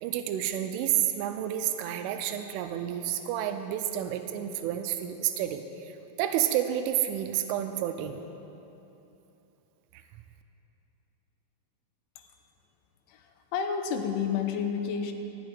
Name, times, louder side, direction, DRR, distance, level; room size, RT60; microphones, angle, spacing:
voice 1, 0.0-5.9 6.2-8.2 9.9-10.0, right 11 dB, 90° right, 7 dB, 3.2 m, -30 dB
voice 2, 13.1-15.1, left 7 dB, 85° left, 5 dB, 3.4 m, -30 dB
14.0 x 8.0 x 9.6 m, 3.0 s
omnidirectional pair, 5.5 m